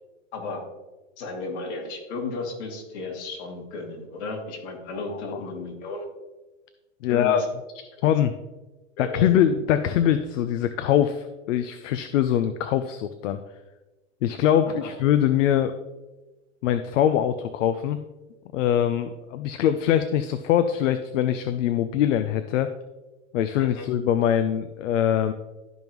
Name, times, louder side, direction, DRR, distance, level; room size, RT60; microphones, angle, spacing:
voice 1, 0.3-0.6 1.2-6.1 7.1-7.4 9.0-9.3 14.8-14.9 23.6-23.9, left 3 dB, 55° left, 0 dB, 2.6 m, -34 dB
voice 2, 4.9-5.4 7.0-7.4 8.0-8.3 9.0-13.4 14.2-15.7 16.6-18.0 18.5-22.7 23.3-25.3, left 10 dB, 75° left, 10 dB, 0.7 m, -23 dB
12.5 x 5.4 x 3.1 m, 1.1 s
supercardioid pair, 145°, 38 cm